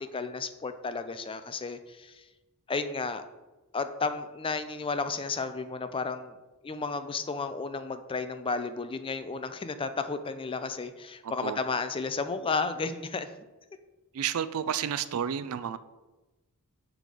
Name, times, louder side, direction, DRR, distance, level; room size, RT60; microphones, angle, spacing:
voice 1, 0.1-2.1 2.7-3.2 3.7-6.4 6.6-13.3 14.7-14.9, left 4 dB, 25° left, 10 dB, 0.4 m, -33 dB
voice 2, 11.2-11.6 14.1-15.8, right 8 dB, 65° right, 14 dB, 0.4 m, -31 dB
6.0 x 5.2 x 4.8 m, 1.1 s
head